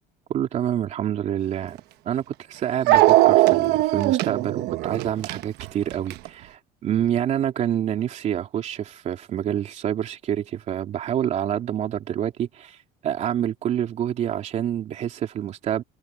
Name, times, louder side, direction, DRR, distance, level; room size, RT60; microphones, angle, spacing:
voice 1, 0.3-1.8 2.0-12.8 13.0-15.8, right 10 dB, 40° right, 3.0 m, -27 dB
Dog, 1.8-1.9 2.9-6.3, right 17 dB, 65° right, 1.0 m, -19 dB
cardioid pair, 170°, 19 cm